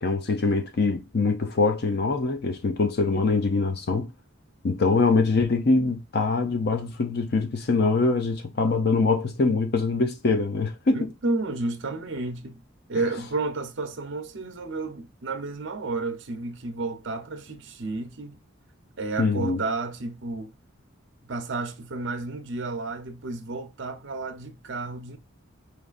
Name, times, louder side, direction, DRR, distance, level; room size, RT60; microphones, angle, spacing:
voice 1, 0.0-4.1 4.6-11.1 19.2-19.6, left 3 dB, 50° left, 0.6 m, -23 dB
voice 2, 10.9-12.6 12.9-18.4 19.0-20.5 21.2-25.2, right 3 dB, 65° right, 0.8 m, -31 dB
4.9 x 3.1 x 2.4 m
head